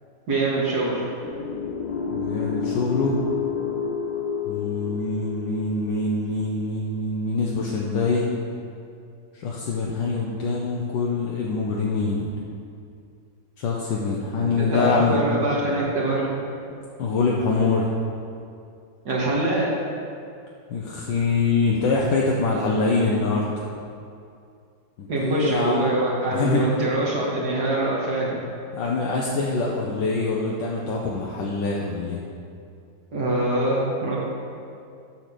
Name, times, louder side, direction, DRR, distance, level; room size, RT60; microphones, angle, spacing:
voice 1, 0.3-1.1 14.6-16.3 19.1-19.7 25.1-28.4 33.1-34.2, right 2 dB, 65° right, -6 dB, 2.0 m, -24 dB
sound 1, 1.2-6.3, left 5 dB, 65° left, 1.1 m, -30 dB
voice 2, 2.1-3.2 4.5-8.3 9.4-12.3 13.6-15.2 17.0-17.9 20.7-23.5 25.0-25.9 26.3-26.7 28.7-32.2, left 4 dB, 80° left, -3 dB, 1.5 m, -24 dB
7.6 x 5.6 x 6.7 m, 2.5 s
omnidirectional pair, 1.9 m